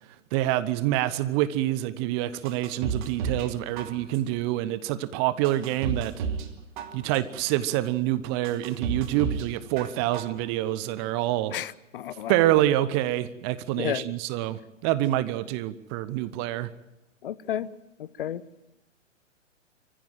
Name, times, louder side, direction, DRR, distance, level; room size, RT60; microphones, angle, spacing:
voice 1, 0.3-6.2 6.9-11.6 12.3-16.7, right 14 dB, 20° right, 0.7 m, -26 dB
sound 1, 2.4-3.5 3.8-4.4 4.9-5.0 5.4-6.5 6.8-7.4 7.9-8.0 8.4-9.5 9.8-10.4 10.7-10.8, right 6 dB, 40° right, 2.6 m, -32 dB
voice 2, 11.5-12.3 13.8-14.1 17.2-17.7 18.0-18.4, left 11 dB, 45° left, 1.0 m, -32 dB
24.5 x 15.0 x 9.1 m
figure-of-eight pair, 120°, 38 cm